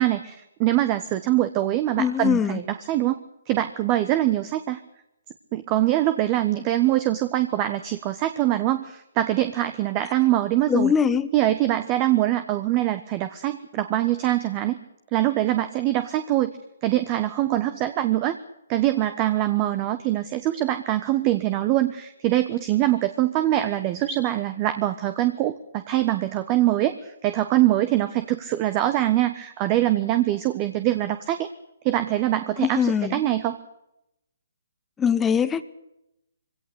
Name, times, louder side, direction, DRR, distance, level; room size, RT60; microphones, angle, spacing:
voice 1, 0.0-3.2 3.5-4.8 5.5-10.9 11.3-14.8 15.1-16.5 16.8-18.4 18.7-31.5 31.8-33.6, right 14 dB, 25° right, 11 dB, 1.2 m, -23 dB
voice 2, 2.0-2.6 10.7-11.3 32.6-33.2 35.0-35.6, left 7 dB, 10° left, 13 dB, 1.1 m, -22 dB
23.0 x 17.5 x 8.2 m, 0.85 s
hypercardioid pair, 150°, 0 cm